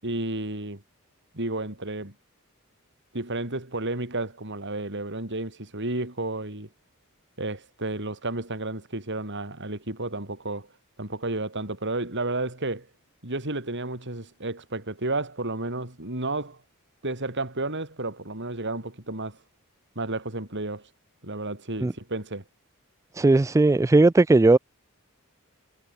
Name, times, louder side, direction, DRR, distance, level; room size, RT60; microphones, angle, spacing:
voice 1, 0.0-0.8 1.3-2.1 3.1-6.7 7.4-10.7 11.0-12.9 13.2-16.6 17.0-19.4 20.0-20.9 21.2-22.4, right 2 dB, 55° right, 6.0 m, -32 dB
voice 2, 23.2-24.6, right 2 dB, 15° right, 0.3 m, -17 dB
head